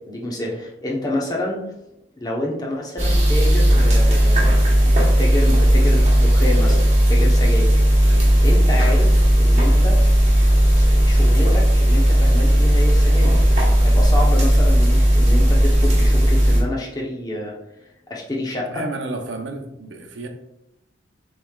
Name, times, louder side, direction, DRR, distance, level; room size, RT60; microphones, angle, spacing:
voice 1, 0.1-1.6 2.2-4.7 5.2-6.8 7.1-7.8 8.4-10.0 10.8-13.3 13.8-17.5 18.1-18.8, left 1 dB, 20° left, -3 dB, 0.9 m, -28 dB
sound 1, 3.0-16.6, equal, 35° right, 1.2 m, -15 dB
voice 2, 18.7-20.3, right 2 dB, 65° right, 5 dB, 0.6 m, -32 dB
6.8 x 3.3 x 2.4 m, 0.88 s
head